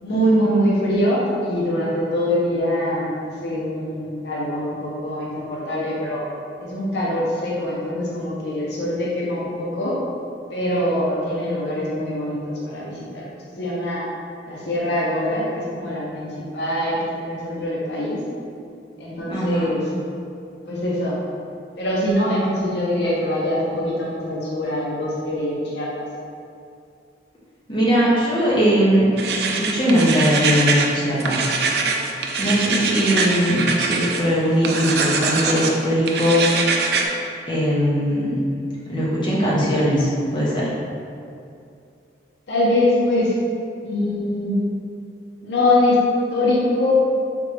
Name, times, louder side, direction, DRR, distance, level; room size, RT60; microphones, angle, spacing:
voice 1, 0.0-6.2 6.6-10.0 10.5-14.0 14.4-18.2 19.0-19.8 20.7-21.2 21.8-26.0 42.5-43.3 43.8-44.6 45.4-46.0 46.3-46.9, left 1 dB, 70° left, -5 dB, 0.6 m, -23 dB
voice 2, 19.3-19.7 27.7-29.1 29.4-31.4 32.4-36.5 37.5-38.4 38.9-40.7, equal, 25° left, -8 dB, 0.9 m, -20 dB
sound 1, 29.2-30.9 31.2-34.2 34.6-35.7 36.1-37.1, right 4 dB, 60° right, 0.4 m, -23 dB
3.8 x 3.4 x 3.3 m, 2.5 s
head